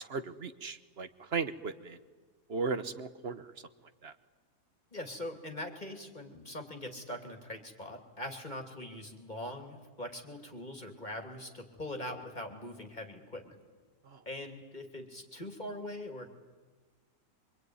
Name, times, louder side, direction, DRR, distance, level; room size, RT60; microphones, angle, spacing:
voice 1, 0.1-2.0 2.5-3.4 4.0-4.1, right 4 dB, 45° right, 12 dB, 1.2 m, -36 dB
voice 2, 4.9-13.6 14.3-16.4, left 1 dB, 25° left, 4 dB, 2.9 m, -42 dB
25.0 x 24.5 x 9.6 m, 1.3 s
omnidirectional pair, 1.7 m